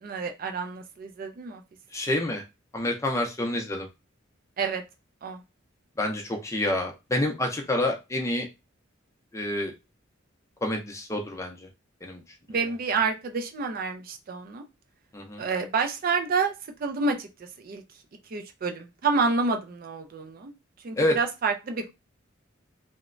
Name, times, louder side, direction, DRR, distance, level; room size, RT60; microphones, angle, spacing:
voice 1, 0.0-1.6 4.6-4.8 5.2-5.4 12.5-14.6 15.4-16.5 16.8-17.3 17.6-17.8 18.3-20.5 20.8-21.9, right 4 dB, 45° right, 5 dB, 0.4 m, -28 dB
voice 2, 1.9-2.4 2.7-3.9 6.0-8.5 9.3-9.7 10.6-11.7 12.0-12.2 15.1-15.4 21.0-21.2, left 1 dB, 15° left, 2 dB, 0.5 m, -28 dB
3.0 x 2.1 x 2.5 m, 0.25 s
head